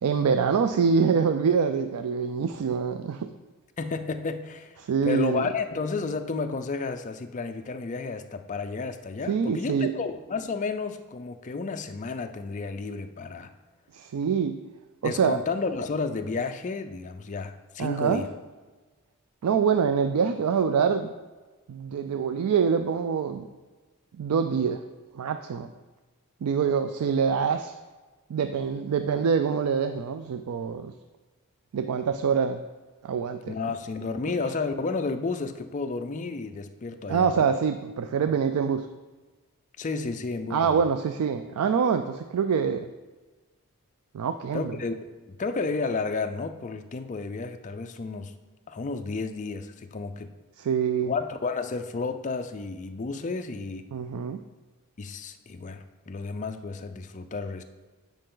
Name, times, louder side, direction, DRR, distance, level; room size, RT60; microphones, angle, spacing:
voice 1, 0.0-3.3 4.8-5.5 9.3-9.9 13.9-14.6 15.0-15.4 17.8-18.2 19.4-21.1 21.7-23.4 24.2-24.8 25.1-25.7 26.4-27.8 28.3-30.9 31.7-32.6 33.0-33.5 37.1-38.9 40.5-42.9 44.1-44.8 50.6-51.1 53.9-54.4, right 6 dB, 85° right, 9 dB, 0.4 m, -25 dB
voice 2, 3.8-4.7 5.0-13.5 15.0-18.3 33.5-37.5 39.8-40.8 44.5-48.3 48.7-50.3 51.1-53.9 55.0-57.6, left 4 dB, 35° left, 7 dB, 0.4 m, -32 dB
8.9 x 5.3 x 3.8 m, 1.3 s
head